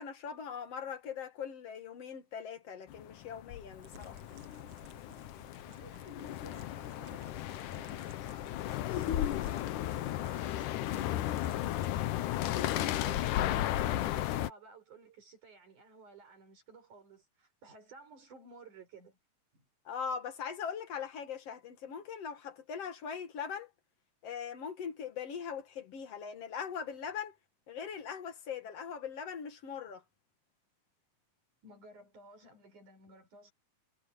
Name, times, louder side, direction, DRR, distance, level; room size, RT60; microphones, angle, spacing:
voice 1, 0.0-4.2 19.9-23.7 24.2-27.4 27.7-30.0, left 7 dB, 55° left, 2.6 m, -41 dB
sound 1, 2.9-14.5, left 13 dB, 80° left, 2.4 m, -34 dB
Crumpling crinkling, 3.7-11.9, right 3 dB, 45° right, 9.3 m, -58 dB
voice 2, 5.8-19.2 19.5-19.7 31.6-33.5, right 4 dB, 75° right, 7.0 m, -56 dB
omnidirectional pair, 3.6 m